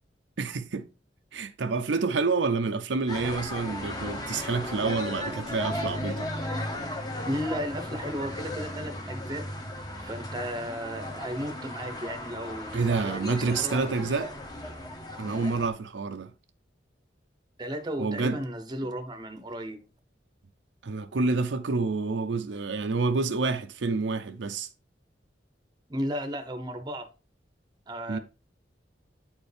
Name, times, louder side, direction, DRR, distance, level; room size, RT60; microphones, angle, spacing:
voice 1, 0.4-0.9 1.3-6.3 12.7-14.3 15.2-16.3 18.0-18.4 20.8-24.7 28.1-28.2, right 4 dB, 85° right, 0.6 m, -28 dB
sound 1, 3.1-15.7, left 1 dB, 20° left, 1.1 m, -36 dB
voice 2, 7.2-9.5 10.0-14.1 17.6-19.8 25.9-27.1 27.9-28.2, equal, 25° right, 0.8 m, -34 dB
8.8 x 4.4 x 3.3 m
head